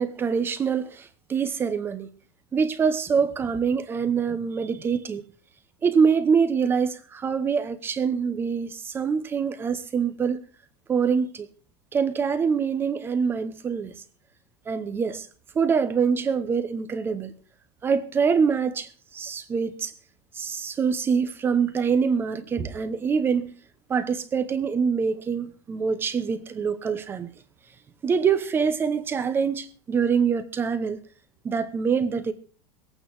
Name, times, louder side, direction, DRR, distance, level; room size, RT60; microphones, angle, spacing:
voice 1, 0.0-2.1 2.5-5.2 5.8-10.4 10.9-11.5 11.9-13.9 14.7-15.3 15.5-17.3 17.8-19.9 20.3-23.5 23.9-27.3 28.0-31.0 31.4-32.3, right 6 dB, 15° right, 0.8 m, -25 dB
21.5 x 8.9 x 4.7 m
supercardioid pair, 170°, 15 cm